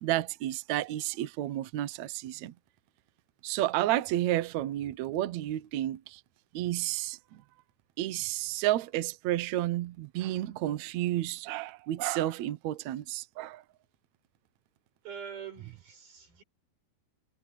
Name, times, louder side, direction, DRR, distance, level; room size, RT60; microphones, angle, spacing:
voice 1, 0.0-2.5 3.4-6.2 6.5-7.4 8.0-13.6, right 14 dB, 85° right, 1.6 m, -31 dB
voice 2, 15.0-16.4, right 8 dB, 65° right, 8.7 m, -44 dB
omnidirectional pair, 4.5 m